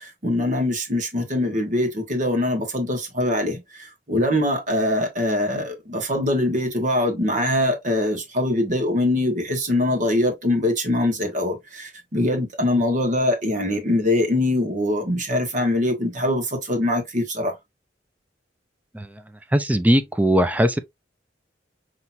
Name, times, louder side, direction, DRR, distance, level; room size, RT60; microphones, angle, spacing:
voice 1, 0.2-3.6 4.1-17.5, left 1 dB, 45° right, 1.4 m, -23 dB
voice 2, 19.5-20.8, equal, 10° right, 0.4 m, -19 dB
5.7 x 3.0 x 2.6 m
head